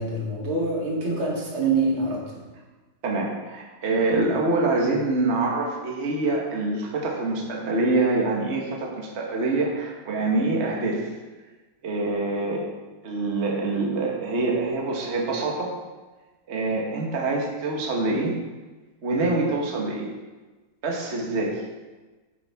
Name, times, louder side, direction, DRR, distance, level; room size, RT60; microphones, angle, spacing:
voice 1, 0.0-2.2, right 3 dB, 85° right, -4 dB, 3.1 m, -25 dB
voice 2, 3.0-11.0 11.8-12.7 13.0-15.7 16.5-18.3 19.0-20.1 20.8-21.5, right 2 dB, 35° right, -1 dB, 1.5 m, -25 dB
10.0 x 8.4 x 3.6 m, 1.2 s
omnidirectional pair, 2.2 m